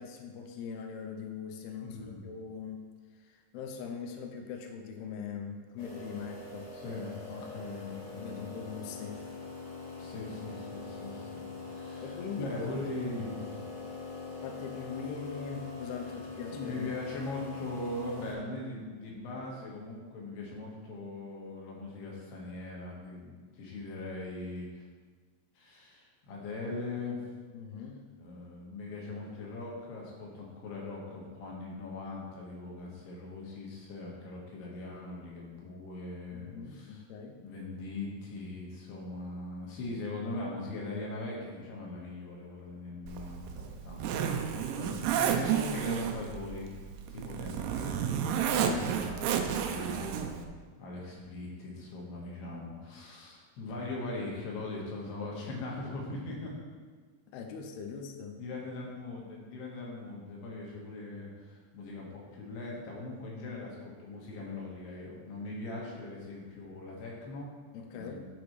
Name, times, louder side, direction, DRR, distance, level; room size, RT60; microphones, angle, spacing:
voice 1, 0.0-2.9 3.2-6.8 8.2-9.3 12.0-12.7 13.2-13.3 14.4-16.9 27.5-28.0 36.3-37.4 44.5-45.1 48.6-49.1 57.3-58.4 67.7-68.3, left 6 dB, 85° left, 3 dB, 2.3 m, -41 dB
voice 2, 1.8-2.3 6.7-8.5 10.0-13.4 16.5-24.8 25.5-27.2 28.2-37.0 37.4-46.7 47.1-50.5 50.8-56.5 58.4-67.5 67.9-68.3, left 2 dB, 70° left, -3 dB, 3.2 m, -40 dB
sound 1, 5.8-18.3, left 3 dB, 50° left, 2.6 m, -43 dB
Zipper (clothing), 43.1-50.4, right 8 dB, 90° right, 3.1 m, -32 dB
12.0 x 5.2 x 3.1 m, 1.5 s
omnidirectional pair, 5.3 m